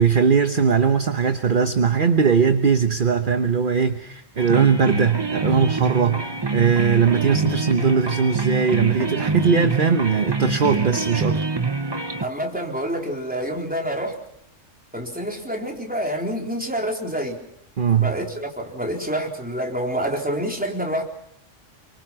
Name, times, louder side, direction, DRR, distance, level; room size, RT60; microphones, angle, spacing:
voice 1, 0.0-11.4 17.8-18.2, right 6 dB, 45° right, 8 dB, 1.2 m, -19 dB
sound 1, 4.4-12.3, right 3 dB, 20° right, 1.0 m, -26 dB
voice 2, 12.2-14.2 14.9-17.4 18.0-21.0, equal, 5° right, 1 dB, 3.9 m, -27 dB
28.0 x 24.5 x 5.9 m, 0.73 s
omnidirectional pair, 1.3 m